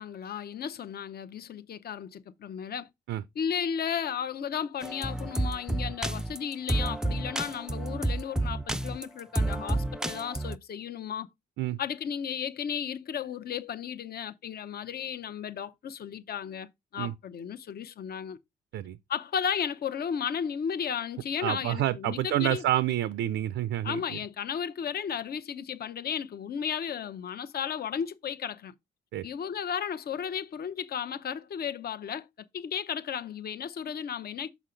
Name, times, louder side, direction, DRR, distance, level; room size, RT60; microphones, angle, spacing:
voice 1, 0.0-2.9 3.3-11.3 11.8-18.4 19.1-22.6 23.8-28.7 29.2-32.3 32.5-34.5, left 8 dB, 50° left, 0.8 m, -34 dB
sound 1, 4.8-10.6, right 1 dB, 5° right, 0.3 m, -30 dB
voice 2, 21.4-24.0 29.1-29.2, right 13 dB, 80° right, 0.5 m, -28 dB
6.4 x 5.8 x 3.8 m
cardioid pair, 90°, 20 cm